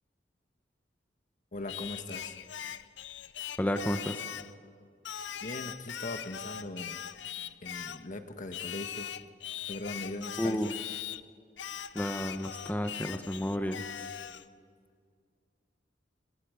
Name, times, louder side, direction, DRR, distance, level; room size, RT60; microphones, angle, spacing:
voice 1, 1.5-2.4 5.4-7.0 7.6-9.1 9.7-10.7, left 2 dB, 45° left, 7 dB, 1.4 m, -40 dB
Singing, 1.7-4.5 5.1-8.1 8.5-11.2 11.6-14.5, left 9 dB, 75° left, 0.7 m, -40 dB
voice 2, 3.6-4.2 10.4-10.7 11.9-14.1, equal, 10° left, 6 dB, 0.9 m, -32 dB
26.0 x 25.5 x 5.1 m, 2.1 s
head